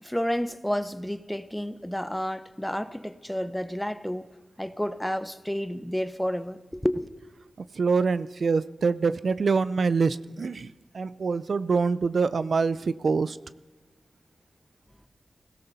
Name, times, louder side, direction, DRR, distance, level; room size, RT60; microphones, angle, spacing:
voice 1, 0.0-4.3 4.6-7.1, equal, 5° left, 0.7 m, -30 dB
voice 2, 7.8-13.4, right 4 dB, 70° right, 0.4 m, -25 dB
20.0 x 17.0 x 4.2 m
wide cardioid pair, 90°, 0 cm